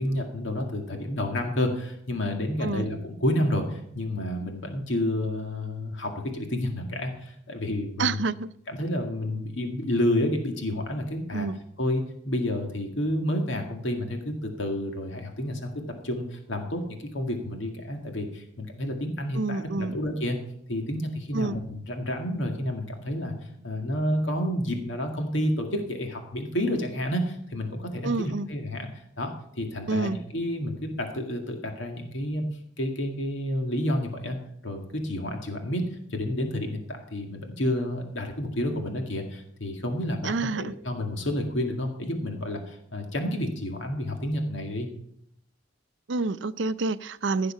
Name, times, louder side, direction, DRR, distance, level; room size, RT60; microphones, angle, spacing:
voice 1, 0.0-8.3 8.7-11.5 11.8-15.7 16.0-20.4 20.7-23.3 23.6-28.9 29.2-32.4 32.8-34.4 34.6-35.8 36.1-44.9, left 1 dB, 85° left, 2.0 m, -30 dB
voice 2, 8.0-8.5 11.3-11.6 19.3-20.0 21.3-21.6 28.0-28.5 29.9-30.2 40.2-40.7 46.1-47.5, right 3 dB, 75° right, 0.5 m, -28 dB
15.5 x 6.7 x 5.7 m
head